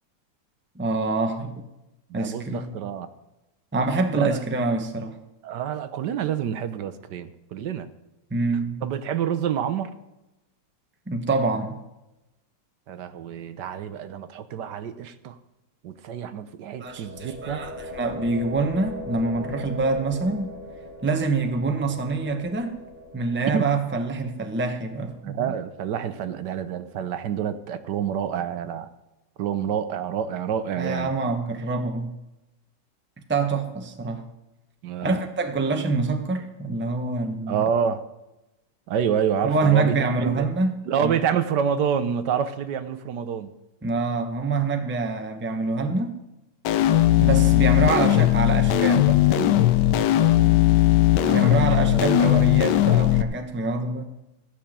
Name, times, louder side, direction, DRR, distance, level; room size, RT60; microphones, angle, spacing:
voice 1, 0.7-1.7 2.1-2.7 3.7-5.2 8.3-8.8 11.1-11.8 16.8-20.5 21.0-22.8 23.1-25.5 30.8-32.1 33.3-34.2 35.0-37.6 39.4-40.8 41.0-41.1 43.8-46.1 47.2-49.6 51.3-54.0, right 3 dB, 10° right, 5 dB, 0.7 m, -26 dB
voice 2, 2.1-3.1 4.1-4.4 5.4-7.9 8.8-9.9 12.9-15.4 15.8-17.7 23.5-23.7 25.2-28.9 29.4-31.1 34.8-35.2 35.6-35.7 37.5-38.0 38.9-40.5 40.8-43.5 50.4-50.7 51.2-52.3, right 8 dB, 70° right, 12 dB, 1.3 m, -28 dB
sound 1, 16.8-26.6, left 1 dB, 30° left, 2.2 m, -40 dB
sound 2, 46.6-53.2, left 13 dB, 75° left, 1.2 m, -18 dB
15.0 x 6.0 x 8.7 m, 0.97 s
omnidirectional pair, 1.9 m